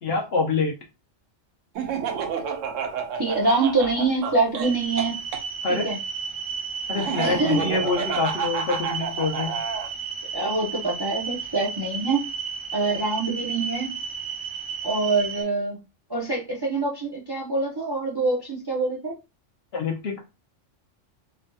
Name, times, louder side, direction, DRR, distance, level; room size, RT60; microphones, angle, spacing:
voice 1, 0.0-0.7 5.6-5.9 6.9-9.6 19.7-20.2, left 4 dB, 60° left, 1 dB, 1.0 m, -26 dB
Laughter, 1.8-5.4 7.0-9.9, right 6 dB, 85° right, 0.9 m, -30 dB
voice 2, 3.2-5.2 5.7-6.0 7.2-7.6 10.3-12.3 12.7-13.9 14.8-15.8 16.1-19.1, right 3 dB, 25° right, -3 dB, 0.5 m, -25 dB
sound 1, 4.6-15.4, right 6 dB, 55° right, 1.7 m, -33 dB
3.4 x 2.7 x 2.2 m, 0.27 s
omnidirectional pair, 1.3 m